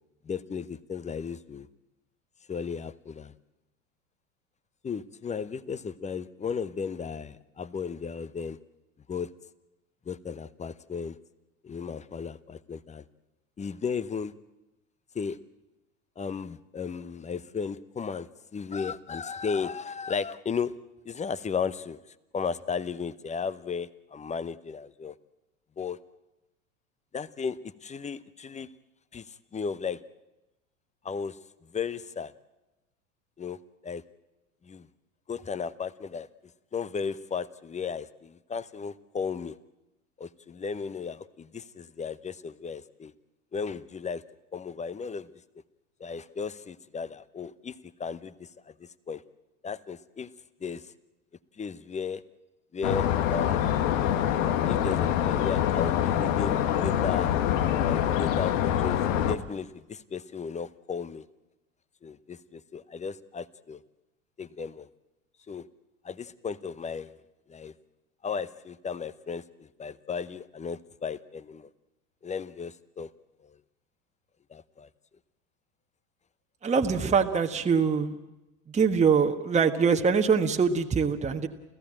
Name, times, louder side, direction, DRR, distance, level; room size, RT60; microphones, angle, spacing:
voice 1, 0.2-1.7 2.5-3.3 4.8-8.6 9.1-9.3 10.0-11.2 11.6-13.0 13.6-14.3 15.1-15.4 16.2-20.7 21.0-22.0 22.3-25.2 25.8-26.0 27.1-28.7 29.1-30.0 31.0-32.3 33.4-34.0 34.6-34.9 35.3-36.3 36.7-39.6 40.2-43.1 43.5-44.2 44.5-45.3 46.0-49.2 49.6-50.3 50.6-50.9 51.6-52.2 52.7-53.9 54.7-57.3 57.8-61.2 62.0-63.8 64.4-64.9 65.5-65.7 66.0-67.1 67.5-67.7 68.2-71.7 72.2-73.1 73.4-73.6 74.5-74.9, left 6 dB, 15° left, 18 dB, 0.9 m, -35 dB
sound 1, 52.8-59.4, left 10 dB, 65° left, 1.5 m, -25 dB
voice 2, 76.6-78.2 78.7-81.5, right 5 dB, 15° right, 5 dB, 1.4 m, -23 dB
29.0 x 15.0 x 8.9 m, 1.0 s
hypercardioid pair, 85°, 42 cm